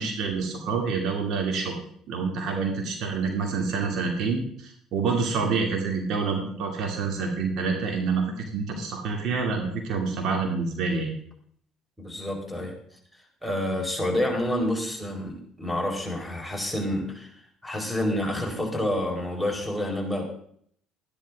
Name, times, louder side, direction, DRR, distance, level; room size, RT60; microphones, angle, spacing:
voice 1, 0.0-1.8 2.1-11.1, right 4 dB, 60° right, 2 dB, 2.5 m, -27 dB
voice 2, 12.0-12.8 13.4-17.3 17.6-20.2, left 1 dB, ahead, -1 dB, 4.5 m, -28 dB
13.5 x 11.5 x 3.7 m, 0.64 s
hypercardioid pair, 60°, 0 cm